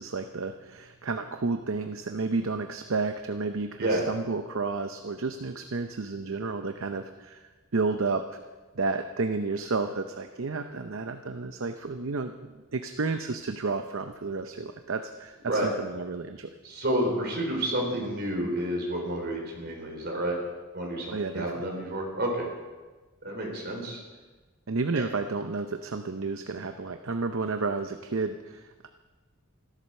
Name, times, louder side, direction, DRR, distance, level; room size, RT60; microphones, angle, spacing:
voice 1, 0.0-8.4 8.7-16.5 21.1-21.6 24.7-28.9, right 3 dB, 65° right, 7 dB, 0.7 m, -31 dB
voice 2, 16.6-20.4 20.7-22.5 23.2-24.0 25.0-25.1, right 1 dB, 45° right, 0 dB, 4.3 m, -30 dB
14.0 x 12.5 x 6.5 m, 1.3 s
head